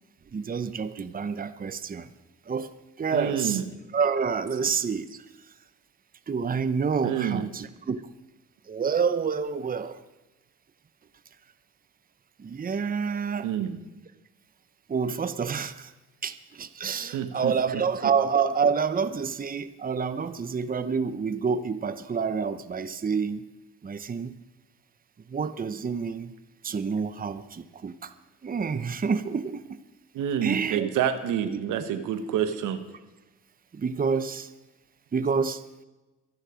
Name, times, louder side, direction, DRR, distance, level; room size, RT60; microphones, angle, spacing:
voice 1, 0.3-2.1 2.5-2.7 3.0-3.6 3.9-5.2 6.3-8.0 8.7-10.0 12.4-13.5 14.9-15.9 16.2-23.4 23.8-24.3 25.3-26.3 26.6-28.1 28.4-29.8 30.4-30.9 33.7-34.5 35.1-35.6, right 6 dB, 30° right, 13 dB, 0.9 m, -28 dB
voice 2, 3.1-3.6 7.0-7.4 13.4-13.8 17.1-17.5 30.1-32.8, right 9 dB, 90° right, 10 dB, 1.5 m, -27 dB
23.5 x 9.8 x 5.1 m, 1.1 s
cardioid pair, 90°, 30 cm